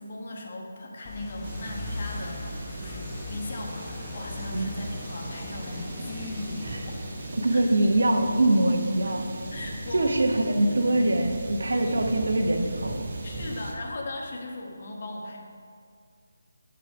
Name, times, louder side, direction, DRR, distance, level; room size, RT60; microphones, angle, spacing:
voice 1, 0.0-7.0 7.5-7.6 9.1-9.2 9.5-10.2 10.5-10.8 11.7-12.1 13.2-15.4, left 2 dB, 45° left, 0 dB, 1.5 m, -38 dB
sound 1, 1.1-7.3, left 2 dB, 20° left, 0.8 m, -39 dB
sound 2, 1.4-13.7, right 2 dB, 45° right, 1.3 m, -38 dB
voice 2, 7.4-9.3 9.9-13.1, right 1 dB, 75° right, 4 dB, 1.0 m, -23 dB
8.8 x 5.0 x 5.9 m, 2.2 s
figure-of-eight pair, 160°, 0 cm